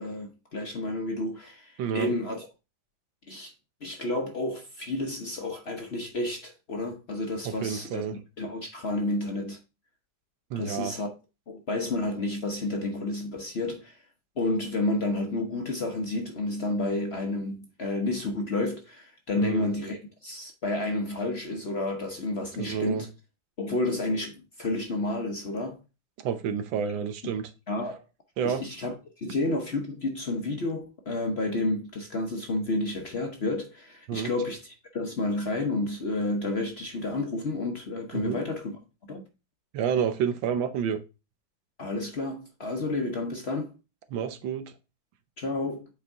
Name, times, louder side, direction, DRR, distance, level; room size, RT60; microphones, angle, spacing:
voice 1, 0.0-2.5 3.3-3.5 3.8-8.0 8.4-9.6 10.6-11.1 11.5-14.0 14.4-23.1 23.6-25.8 27.7-28.0 28.4-38.8 39.1-39.2 41.8-43.7 45.4-45.9, left 2 dB, 45° left, 0.9 m, -30 dB
voice 2, 1.8-2.1 7.4-8.2 10.5-11.0 19.4-19.7 22.6-23.1 26.2-27.5 28.4-28.6 34.1-34.3 38.1-38.4 39.7-41.0 44.1-44.7, right 7 dB, 80° right, 1.6 m, -29 dB
8.0 x 4.3 x 3.5 m
omnidirectional pair, 2.1 m